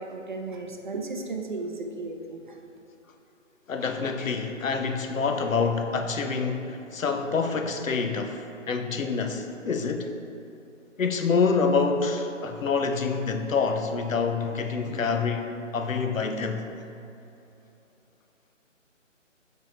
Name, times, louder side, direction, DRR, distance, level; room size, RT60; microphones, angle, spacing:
voice 1, 0.0-2.5, right 3 dB, 40° right, 3 dB, 0.5 m, -35 dB
voice 2, 3.7-10.1 11.0-16.7, left 4 dB, 90° left, 6 dB, 0.7 m, -27 dB
6.9 x 4.7 x 3.0 m, 2.8 s
figure-of-eight pair, 155°, 38 cm